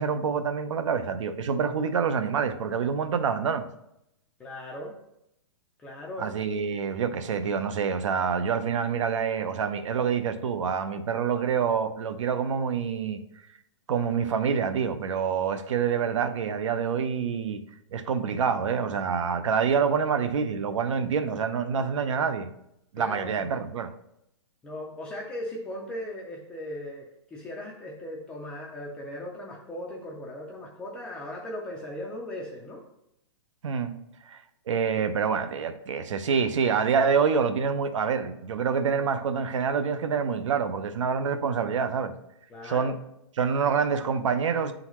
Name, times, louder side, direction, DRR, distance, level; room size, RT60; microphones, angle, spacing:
voice 1, 0.0-3.7 6.2-13.2 13.9-17.6 17.9-22.5 22.9-23.9 33.6-33.9 34.3-34.4 34.7-42.1 42.6-43.0 43.4-44.7, right 6 dB, 80° right, 0.6 m, -26 dB
voice 2, 4.4-5.0 5.8-6.3 23.0-23.7 24.6-32.8 42.5-42.9, left 1 dB, 5° left, 0.3 m, -38 dB
9.7 x 3.9 x 3.0 m
hypercardioid pair, 170°, 16 cm